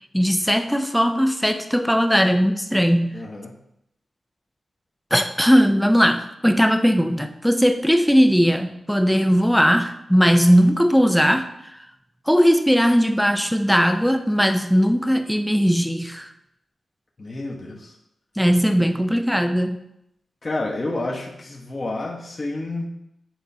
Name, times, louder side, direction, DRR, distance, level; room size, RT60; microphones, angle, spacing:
voice 1, 0.1-3.1 5.1-11.5 12.3-16.3 18.4-19.8, equal, ahead, 7 dB, 0.4 m, -18 dB
voice 2, 3.1-3.5 17.2-17.9 20.4-22.9, left 2 dB, 35° left, -3 dB, 0.9 m, -29 dB
9.0 x 4.3 x 2.7 m, 0.81 s
wide cardioid pair, 145°, 0 cm